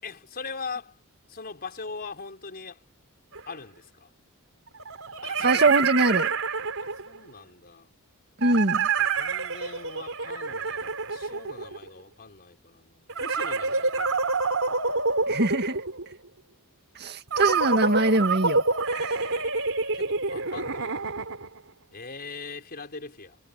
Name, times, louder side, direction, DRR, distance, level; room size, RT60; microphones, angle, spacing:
voice 1, 0.0-1.0 1.3-2.8 3.4-4.1 5.2-5.7 6.8-7.9 9.0-14.4 19.9-21.2 21.9-23.4, left 4 dB, 45° left, 5.0 m, -41 dB
sound 1, 3.3-3.4 4.8-7.2 8.4-11.9 13.1-16.1 17.3-21.6, right 4 dB, 65° right, 5.3 m, -27 dB
voice 2, 5.4-6.4 8.4-8.9 15.3-15.8 17.0-19.3, right 2 dB, 50° right, 2.0 m, -23 dB
head